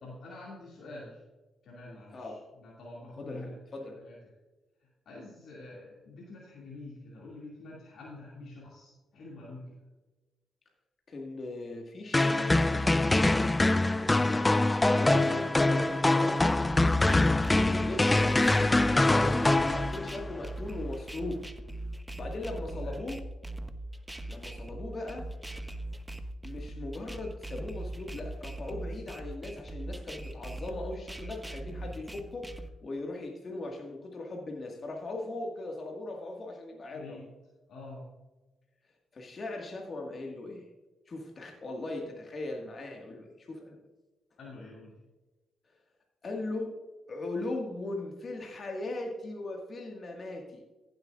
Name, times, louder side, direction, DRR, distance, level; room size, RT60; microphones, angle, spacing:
voice 1, 0.0-1.2 1.6-3.6 4.0-4.3 4.8-9.9 22.8-22.9 36.9-37.3 37.7-38.1 44.4-45.0, left 2 dB, 70° left, -5 dB, 2.5 m, -47 dB
voice 2, 3.2-4.0 11.1-12.7 14.2-14.6 14.9-16.4 17.1-21.5 22.1-23.2 24.3-25.3 26.4-37.2 39.1-40.7 41.1-43.8 46.2-46.8 47.1-50.6, left 2 dB, 50° left, 1 dB, 1.9 m, -39 dB
sound 1, 12.1-20.3, left 2 dB, 20° left, 0.4 m, -24 dB
sound 2, 16.7-32.7, right 1 dB, 10° right, 0.9 m, -40 dB
15.0 x 7.9 x 2.5 m, 1.2 s
supercardioid pair, 55°, 0 cm